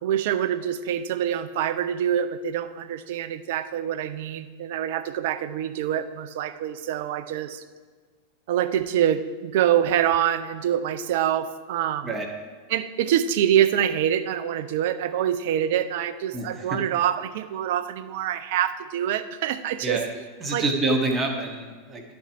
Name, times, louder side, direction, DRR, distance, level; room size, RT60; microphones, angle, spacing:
voice 1, 0.0-7.6 8.5-12.1 12.7-20.0 20.5-20.6, right 10 dB, 50° right, 12 dB, 0.4 m, -25 dB
voice 2, 16.3-16.8 19.8-20.1 20.4-22.0, right 2 dB, 20° right, 3 dB, 1.1 m, -27 dB
11.0 x 4.3 x 4.7 m, 1.4 s
figure-of-eight pair, 90°, 0 cm